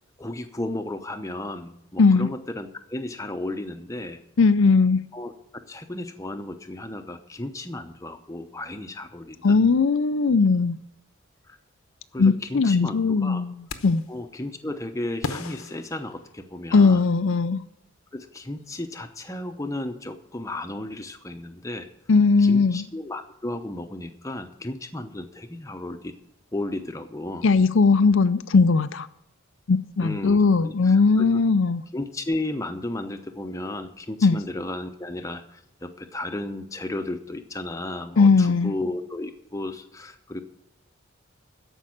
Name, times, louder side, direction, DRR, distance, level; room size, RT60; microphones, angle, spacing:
voice 1, 0.2-4.2 5.1-5.3 5.7-9.6 11.5-11.6 12.1-13.4 14.1-17.0 18.1-21.9 22.4-26.1 26.5-27.4 30.0-31.2 31.9-40.4, left 1 dB, 15° left, 0.8 m, -34 dB
voice 2, 4.4-5.0 9.4-10.8 12.2-14.0 16.7-17.6 22.1-22.9 27.4-29.1 29.7-31.8 34.2-34.4 38.2-38.7, left 4 dB, 65° left, 0.5 m, -19 dB
sound 1, 13.7-14.2 15.2-16.7, left 4 dB, 80° left, 1.0 m, -36 dB
14.0 x 5.5 x 8.6 m
head